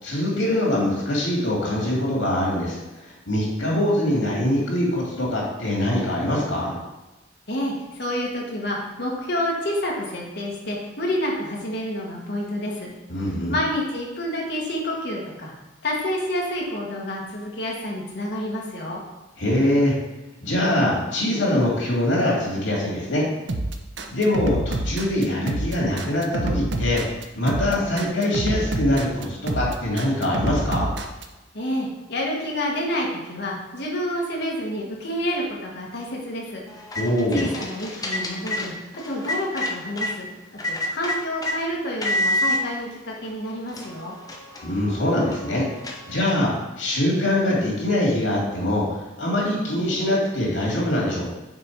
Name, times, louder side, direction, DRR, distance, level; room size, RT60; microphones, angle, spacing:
voice 1, 0.0-2.8 3.3-6.8 13.1-13.5 19.4-19.9 20.4-23.3 24.1-27.0 27.3-30.9 37.0-37.5 44.6-45.7 46.1-46.5 46.8-51.3, left 1 dB, 90° left, -3 dB, 2.3 m, -23 dB
voice 2, 7.5-12.9 13.5-15.5 15.8-19.0 31.5-36.6 36.9-37.0 37.3-38.7 39.0-40.3 40.7-44.2, left 1 dB, 60° left, -2 dB, 1.4 m, -28 dB
sound 1, 23.5-31.2, right 2 dB, 65° right, 0.6 m, -27 dB
sound 2, 36.7-40.1 40.6-41.6 42.0-42.6 43.3-43.4 43.7-46.5, left 1 dB, 20° left, 0.7 m, -29 dB
6.1 x 4.1 x 4.5 m, 1.0 s
head